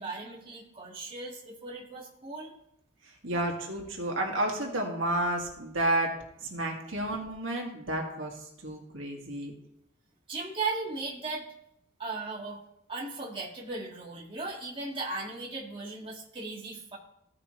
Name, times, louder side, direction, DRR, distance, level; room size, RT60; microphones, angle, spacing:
voice 1, 0.0-2.5 10.3-11.5 12.0-12.6 12.9-17.0, right 3 dB, 25° right, -4 dB, 1.9 m, -37 dB
voice 2, 3.2-6.1 6.5-8.3 8.6-9.5, right 1 dB, 75° right, 0 dB, 2.1 m, -31 dB
15.5 x 5.8 x 3.2 m, 0.78 s
head